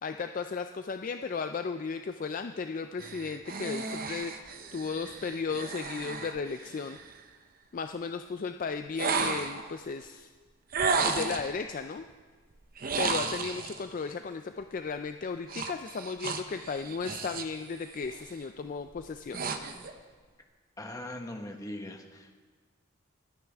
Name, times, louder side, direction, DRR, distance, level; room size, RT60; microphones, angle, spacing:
voice 1, 0.0-7.0 7.7-10.3 11.0-12.1 13.0-19.4, left 5 dB, 40° left, 8 dB, 0.3 m, -35 dB
sound 1, 3.0-7.2 9.0-9.7 10.7-11.6 12.8-13.8 15.5-17.6 17.9-18.3 18.9-19.9, right 4 dB, 45° right, 0.8 m, -33 dB
voice 2, 20.8-22.5, left 1 dB, 15° left, 2 dB, 1.2 m, -41 dB
26.5 x 9.4 x 3.5 m, 1.5 s
head